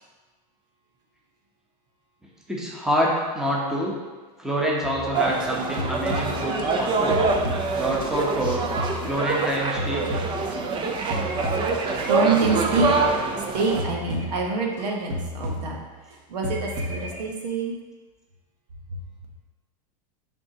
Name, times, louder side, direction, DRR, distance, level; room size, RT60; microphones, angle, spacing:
voice 1, 2.5-4.0 4.4-7.3 7.7-8.7 9.0-10.2, equal, 5° right, -4 dB, 1.0 m, -26 dB
sound 1, 4.8-5.4 5.8-8.1 8.4-10.8 11.1-13.5 13.8-14.9 15.1-16.1 16.4-17.2, left 1 dB, 40° right, 1.7 m, -32 dB
sound 2, 5.1-13.8, right 4 dB, 25° right, 0.5 m, -25 dB
voice 2, 11.9-12.9 13.5-15.8 16.3-17.8 18.9-19.0, right 4 dB, 80° right, 1 dB, 1.2 m, -26 dB
9.6 x 3.6 x 2.9 m, 1.3 s
supercardioid pair, 135°, 21 cm